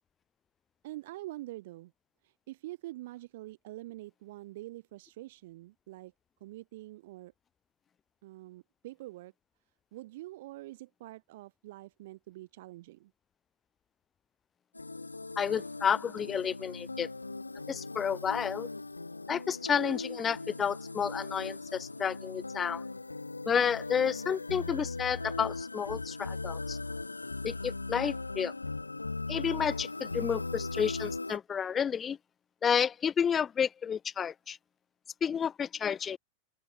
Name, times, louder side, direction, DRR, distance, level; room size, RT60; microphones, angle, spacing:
voice 1, 0.8-1.9 2.2-6.1 6.4-7.3 8.2-9.3 9.9-13.1, right 17 dB, 55° right, 1.4 m, -45 dB
sound 1, 14.8-31.4, left 3 dB, 80° left, 0.4 m, -39 dB
voice 2, 15.4-17.1 17.7-18.7 19.3-22.8 23.5-26.8 27.4-28.5 29.3-32.2 32.6-34.6 35.2-36.2, left 7 dB, 20° left, 0.7 m, -31 dB
open air
figure-of-eight pair, 90°, 0 cm